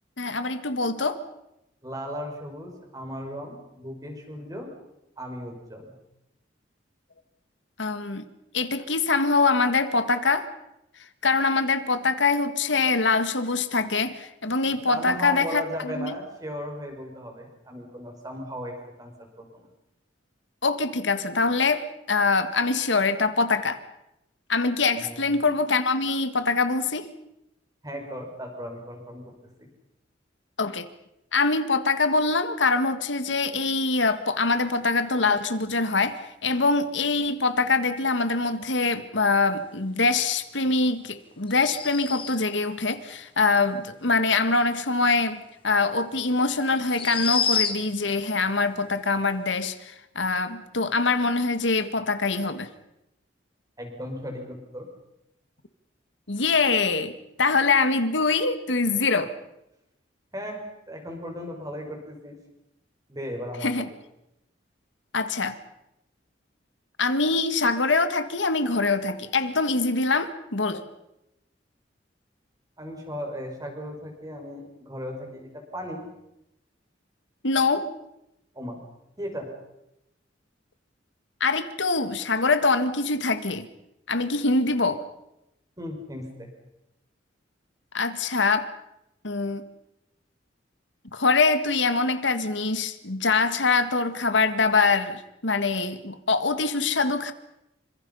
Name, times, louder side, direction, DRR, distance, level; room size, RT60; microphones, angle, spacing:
voice 1, 0.2-1.2 7.8-8.3 8.5-10.5 11.2-16.1 20.6-23.8 24.5-27.1 30.6-30.9 31.3-52.7 56.3-59.3 63.6-63.8 65.1-65.6 67.0-70.9 77.4-77.9 81.4-83.7 84.1-85.0 87.9-88.7 89.2-89.6 91.1-97.3, left 3 dB, 80° left, 10 dB, 1.8 m, -24 dB
voice 2, 1.8-4.7 5.2-6.0 14.9-19.6 25.0-25.5 27.8-29.3 29.6-29.7 53.8-54.9 60.3-62.4 63.1-63.9 72.8-76.0 78.5-78.8 79.2-79.5 85.8-86.5, equal, 20° right, 2 dB, 6.1 m, -36 dB
sound 1, 41.5-42.6 45.7-45.8 46.8-48.1, left 6 dB, 30° left, 2.7 m, -28 dB
28.0 x 25.5 x 5.6 m, 0.87 s
head